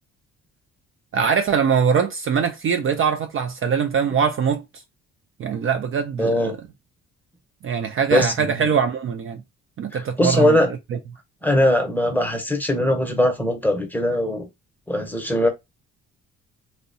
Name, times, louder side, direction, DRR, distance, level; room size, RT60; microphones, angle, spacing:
voice 1, 1.1-4.6 5.4-6.5 7.6-9.4 9.8-10.6 10.9-11.0, right 6 dB, 45° right, 0.4 m, -22 dB
voice 2, 6.2-6.6 8.1-8.7 9.9-10.7 11.4-14.4 14.9-15.5, left 1 dB, 5° left, 0.7 m, -20 dB
2.6 x 2.1 x 2.5 m
cardioid pair, 90°, 30 cm